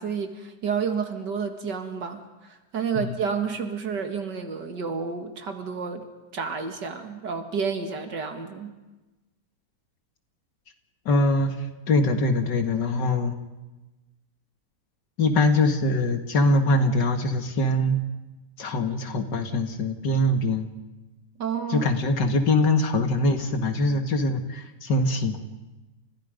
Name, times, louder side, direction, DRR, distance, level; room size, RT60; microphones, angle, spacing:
voice 1, 0.0-6.1 6.3-8.7 21.4-21.9, right 6 dB, 80° right, 6 dB, 2.5 m, -30 dB
voice 2, 11.1-13.3 15.2-18.0 18.6-20.7 21.7-25.4, left 2 dB, 85° left, 6 dB, 2.7 m, -23 dB
30.0 x 28.0 x 5.3 m, 1.1 s
omnidirectional pair, 1.8 m